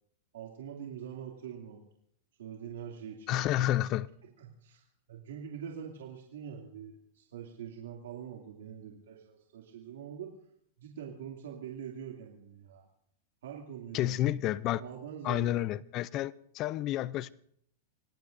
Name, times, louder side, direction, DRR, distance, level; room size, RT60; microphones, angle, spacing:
voice 1, 0.3-1.8 2.4-3.7 4.4-10.3 10.8-12.9 13.4-14.4 14.8-15.6, right 8 dB, 85° right, 2.6 m, -44 dB
voice 2, 3.3-4.1 13.9-14.8 15.2-17.3, left 14 dB, 30° left, 0.5 m, -30 dB
27.0 x 19.0 x 2.6 m
supercardioid pair, 155°, 0 cm